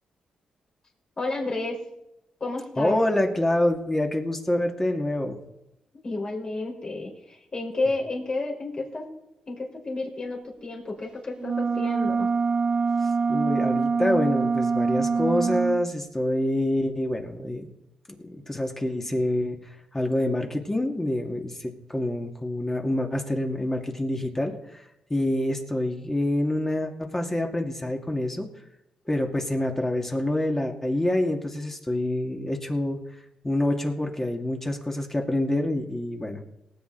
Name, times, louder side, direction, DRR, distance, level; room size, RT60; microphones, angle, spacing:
voice 1, 1.2-1.8 2.4-3.0 6.0-9.1 9.5-12.3, left 2 dB, 40° left, 0 dB, 4.7 m, -31 dB
voice 2, 2.8-5.4 13.3-17.7 18.2-19.6 19.9-24.5 25.1-28.5 29.1-33.0 33.4-36.4, left 1 dB, 20° left, 2 dB, 2.3 m, -26 dB
sound 1, 11.4-15.8, right 5 dB, 40° right, 0.5 m, -24 dB
18.5 x 8.4 x 4.0 m, 0.86 s
cardioid pair, 70°, 2 cm